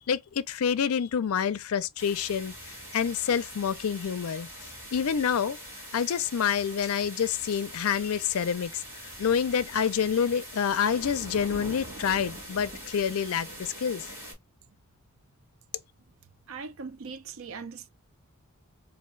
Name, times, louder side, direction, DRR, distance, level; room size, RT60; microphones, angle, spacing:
voice 1, 0.0-4.5 4.9-5.6 5.9-14.1, left 7 dB, 70° left, 0.4 m, -28 dB
sound 1, 2.0-14.3, equal, 10° right, 2.0 m, -43 dB
voice 2, 16.5-17.9, right 5 dB, 65° right, 0.5 m, -40 dB
3.3 x 2.5 x 3.1 m
head